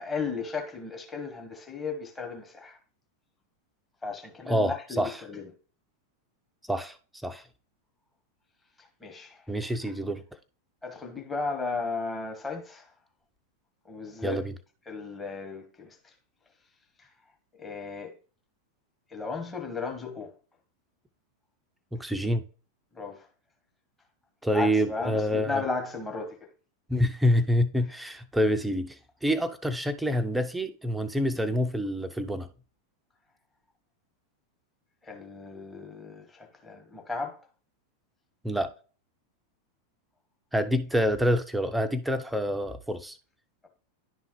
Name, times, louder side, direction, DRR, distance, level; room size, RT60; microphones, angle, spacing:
voice 1, 0.0-2.8 4.0-5.4 8.8-9.5 10.8-12.9 13.8-14.4 14.9-16.1 17.0-17.1 17.6-18.2 19.1-20.3 22.9-23.3 24.5-26.5 35.0-37.4, left 4 dB, 15° left, 1.2 m, -35 dB
voice 2, 4.5-5.2 6.7-7.0 7.2-7.4 9.5-10.2 14.2-14.5 21.9-22.4 24.4-25.6 26.9-32.5 38.4-38.7 40.5-43.2, equal, 5° right, 0.5 m, -27 dB
10.5 x 3.8 x 3.1 m
figure-of-eight pair, 90°, 0 cm